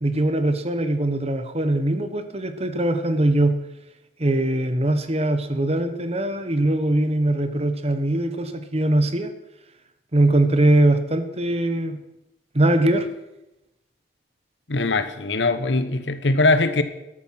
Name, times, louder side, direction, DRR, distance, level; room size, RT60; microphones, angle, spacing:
voice 1, 0.0-3.6 4.2-9.3 10.1-12.0 12.5-13.1, right 1 dB, 35° right, 9 dB, 1.2 m, -21 dB
voice 2, 14.7-16.8, left 2 dB, 85° left, 11 dB, 1.2 m, -21 dB
13.5 x 11.0 x 6.0 m, 0.91 s
head